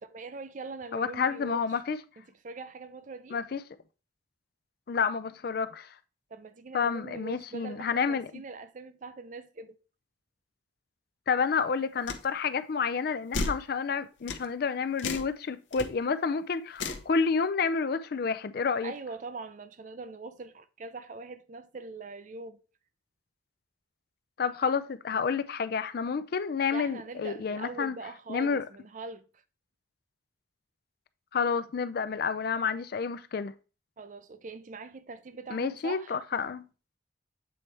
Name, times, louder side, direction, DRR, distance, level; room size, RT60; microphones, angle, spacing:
voice 1, 0.0-1.6 2.2-3.4 6.3-9.8 18.8-22.6 26.7-29.2 34.0-36.2, right 3 dB, 40° right, 0.4 m, -42 dB
voice 2, 0.9-2.0 3.3-3.6 4.9-5.9 6.7-8.3 11.3-18.9 24.4-28.0 28.3-28.6 31.3-33.5 35.5-36.6, left 5 dB, 50° left, 0.4 m, -29 dB
sound 1, 12.1-12.2 13.3-13.6 14.3-14.4 15.0-15.3 15.7-15.9 16.8-17.1, left 3 dB, 75° left, 0.8 m, -32 dB
7.7 x 4.2 x 3.2 m
head